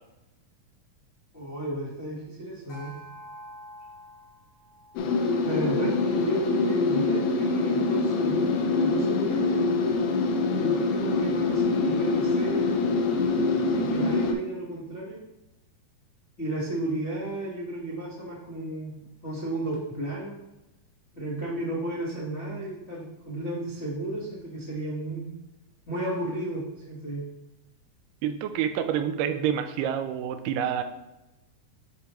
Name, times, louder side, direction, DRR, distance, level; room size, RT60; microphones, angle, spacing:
voice 1, 1.3-2.9 5.4-9.5 10.5-12.8 13.7-15.2 16.4-19.0 19.2-20.4 21.1-25.3 25.9-27.3, right 1 dB, 45° left, -7 dB, 0.8 m, -33 dB
sound 1, 2.7-7.3, equal, 60° left, 2.2 m, -49 dB
sound 2, 5.0-14.3, left 3 dB, 90° left, 2.5 m, -25 dB
voice 2, 28.2-30.8, right 9 dB, 85° right, 9 dB, 2.1 m, -28 dB
10.0 x 4.4 x 3.1 m, 0.99 s
omnidirectional pair, 3.8 m